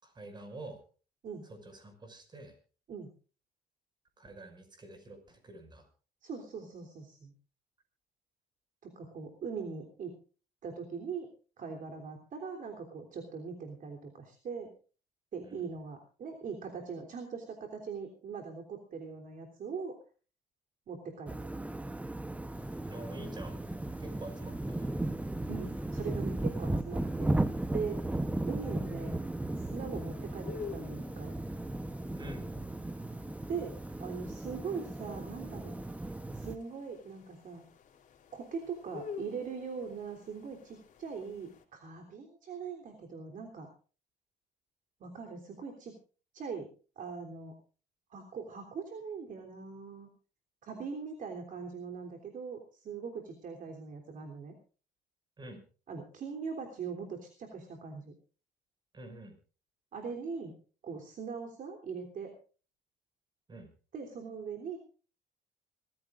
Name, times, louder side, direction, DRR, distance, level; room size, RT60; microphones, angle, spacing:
voice 1, 0.0-0.8 1.5-2.5 4.2-5.9 15.4-15.7 22.9-23.6 24.0-24.9 32.2-32.5 55.4-55.6 58.9-59.3 63.5-63.7, right 2 dB, 25° right, 7 dB, 5.9 m, -47 dB
voice 2, 6.2-7.3 8.8-10.2 10.6-11.3 11.6-14.7 15.3-20.0 20.9-21.6 25.5-27.4 27.7-28.0 28.4-29.2 29.7-31.3 33.5-35.7 36.3-37.6 38.3-43.7 45.0-45.9 46.3-46.7 46.9-47.5 48.1-50.1 50.6-54.5 55.9-58.1 59.9-60.5 60.8-62.3 63.9-64.8, right 5 dB, 50° right, 3 dB, 3.4 m, -41 dB
sound 1, 21.3-36.6, right 1 dB, 10° right, 0.9 m, -36 dB
sound 2, 22.5-41.6, left 6 dB, 50° left, 3.4 m, -52 dB
25.5 x 15.0 x 2.5 m, 0.38 s
cardioid pair, 110°, 17 cm